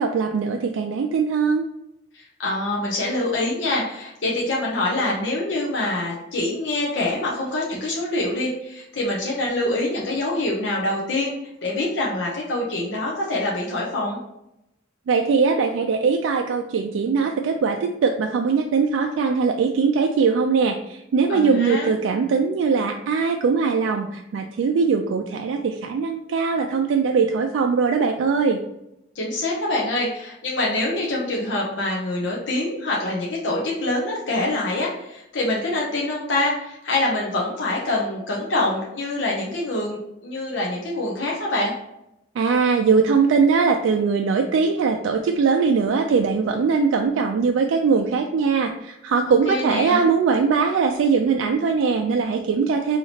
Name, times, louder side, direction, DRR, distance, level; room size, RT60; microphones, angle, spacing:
voice 1, 0.0-1.6 15.1-28.6 42.4-53.0, right 5 dB, 85° right, 4 dB, 0.3 m, -21 dB
voice 2, 2.1-14.2 21.3-21.9 29.1-41.7 49.3-50.0, left 2 dB, 75° left, -3 dB, 0.7 m, -25 dB
4.2 x 2.8 x 2.8 m, 0.83 s
head